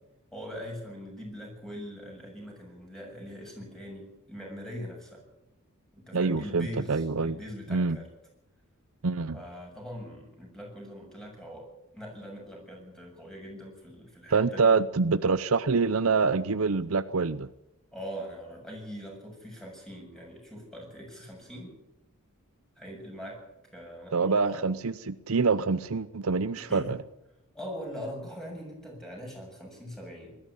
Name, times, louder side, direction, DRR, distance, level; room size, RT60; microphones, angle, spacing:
voice 1, 0.3-5.2 5.9-8.1 9.3-11.7 11.9-14.8 17.9-21.8 22.8-23.4 23.7-24.8 26.6-26.9 27.5-30.4, equal, ahead, 0 dB, 7.3 m, -42 dB
voice 2, 6.1-7.4 7.7-8.0 9.0-9.4 14.3-17.5 24.1-27.0, right 4 dB, 70° right, 14 dB, 0.7 m, -26 dB
20.0 x 13.5 x 9.9 m, 0.90 s
head